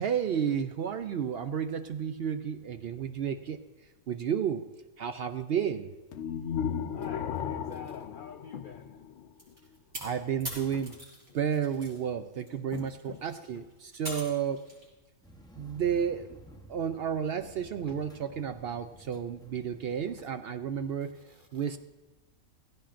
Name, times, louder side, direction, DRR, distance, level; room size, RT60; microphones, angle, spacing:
voice 1, 0.0-3.6 4.1-4.7 5.0-5.9 10.0-10.9 11.3-14.6 15.6-16.4 16.7-21.2 21.5-21.8, right 8 dB, 65° right, 9 dB, 0.6 m, -32 dB
sound 1, 6.1-9.3, left 8 dB, 65° left, 0.9 m, -35 dB
voice 2, 6.9-9.6 10.7-11.0 11.3-11.4 12.7-13.3 13.5-13.7 17.9-18.2 20.1-20.3 20.9-21.8, left 7 dB, 85° left, 7 dB, 0.4 m, -47 dB
sound 2, 9.4-12.0 12.3-14.9, equal, 45° right, 4.8 m, -43 dB
sound 3, 15.2-20.2, right 1 dB, 5° left, 0.5 m, -53 dB
16.5 x 16.0 x 2.5 m, 1.1 s
omnidirectional pair, 1.5 m